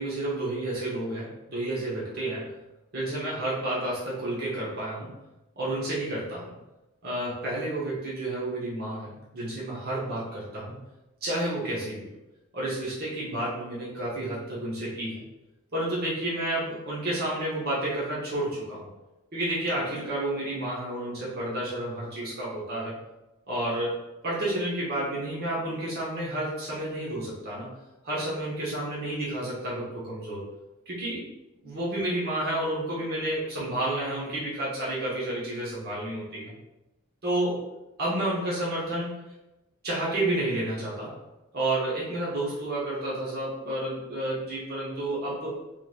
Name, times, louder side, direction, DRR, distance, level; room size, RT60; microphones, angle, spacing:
voice 1, 0.0-2.6 2.9-5.1 5.6-6.5 7.0-10.7 11.2-12.1 12.5-15.2 15.7-18.9 19.3-23.0 23.5-24.0 24.2-27.7 28.0-30.5 30.9-31.2 31.6-36.5 37.2-37.7 38.0-39.3 39.8-41.2 41.5-45.6, right 1 dB, 50° right, -6 dB, 1.1 m, -30 dB
3.8 x 3.2 x 2.4 m, 0.98 s
head